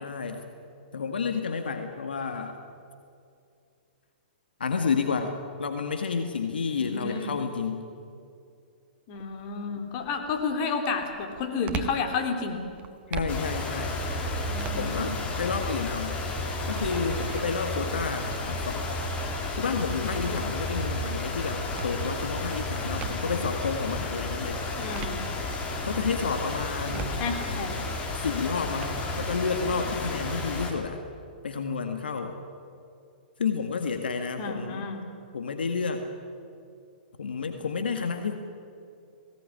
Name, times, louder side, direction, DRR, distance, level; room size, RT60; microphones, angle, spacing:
voice 1, 0.0-0.5 0.9-2.6 4.6-7.9 13.1-14.0 14.7-16.2 16.7-19.0 19.6-24.6 25.8-27.2 28.2-31.0 31.4-32.4 33.4-34.9 35.3-36.1 37.2-38.4, left 5 dB, 80° left, 6 dB, 1.9 m, -30 dB
voice 2, 6.8-7.4 9.1-12.6 14.5-15.2 20.2-20.4 24.8-25.2 26.9-27.7 34.4-35.0, left 5 dB, 40° left, 4 dB, 3.8 m, -31 dB
sound 1, 9.1-9.5 10.0-23.5 24.0-25.8 26.3-28.8, right 7 dB, 30° right, 1.6 m, -43 dB
sound 2, 13.3-30.7, left 2 dB, 25° left, 3.8 m, -32 dB
21.0 x 18.0 x 10.0 m, 2.5 s
hypercardioid pair, 125°, 5 cm